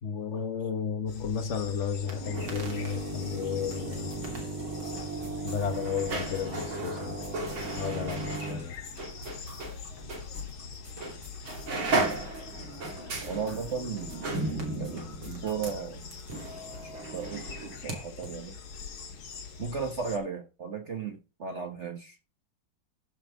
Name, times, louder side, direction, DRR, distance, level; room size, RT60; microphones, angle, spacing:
voice 1, 0.0-4.2 5.4-7.1 7.8-8.7, left 7 dB, 40° left, 1.4 m, -33 dB
sound 1, 1.1-20.2, left 5 dB, 90° left, 2.4 m, -44 dB
sound 2, 2.0-9.8 10.1-10.2 11.0-11.2 11.4-18.0 18.2-18.3, right 2 dB, 90° right, 3.6 m, -35 dB
sound 3, 4.1-15.5, left 3 dB, 10° right, 3.3 m, -49 dB
voice 2, 13.2-14.3 14.8-16.1 16.8-17.5 17.8-18.6 19.6-22.2, right 5 dB, 40° right, 1.3 m, -35 dB
14.5 x 5.7 x 3.9 m
omnidirectional pair, 2.2 m